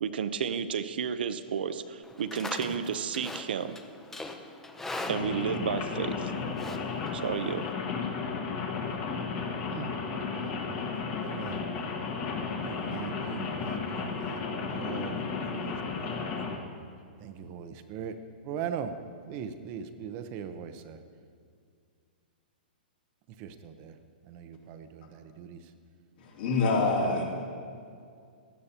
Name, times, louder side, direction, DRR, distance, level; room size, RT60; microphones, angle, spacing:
voice 1, 0.0-3.8 5.1-6.3 7.1-7.6, right 7 dB, 75° right, 11 dB, 0.6 m, -32 dB
Livestock farm animals working animals, 2.0-7.7, left 2 dB, 5° left, 0.6 m, -41 dB
Rain, 5.1-16.6, left 5 dB, 40° left, 1.3 m, -34 dB
voice 2, 10.3-10.9 11.2-11.7 12.6-16.4 17.2-18.2 18.4-19.0 19.2-21.0 23.3-24.0 24.2-25.7, right 8 dB, 35° right, 8 dB, 0.7 m, -40 dB
voice 3, 26.2-27.3, left 3 dB, 65° left, -2 dB, 2.9 m, -26 dB
16.5 x 11.5 x 2.9 m, 2.2 s
hypercardioid pair, 140°, 5 cm